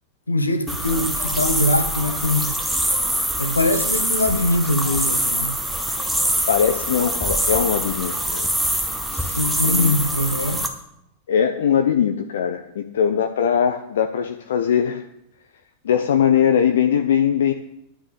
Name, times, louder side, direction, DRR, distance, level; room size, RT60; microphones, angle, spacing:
voice 1, 0.3-2.6 3.4-5.5 9.1-10.6, left 1 dB, 80° left, 8 dB, 1.4 m, -22 dB
sound 1, 0.7-10.7, right 1 dB, 5° right, 1.7 m, -24 dB
voice 2, 6.5-8.5 9.6-9.9 11.3-15.0 15.8-17.5, left 8 dB, 60° left, 6 dB, 0.7 m, -20 dB
10.5 x 6.2 x 8.9 m, 0.78 s
figure-of-eight pair, 90°, 0 cm